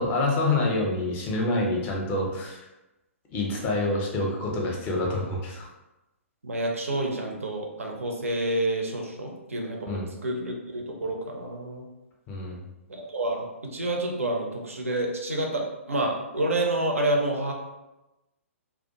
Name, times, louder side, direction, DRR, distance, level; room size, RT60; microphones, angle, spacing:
voice 1, 0.0-2.7 3.3-5.7 9.9-10.0 12.3-12.6, left 2 dB, 25° left, -1 dB, 0.5 m, -27 dB
voice 2, 6.4-11.8 12.9-17.5, right 1 dB, 70° right, 1 dB, 0.5 m, -29 dB
2.3 x 2.2 x 2.7 m, 1.0 s
figure-of-eight pair, 115°, 8 cm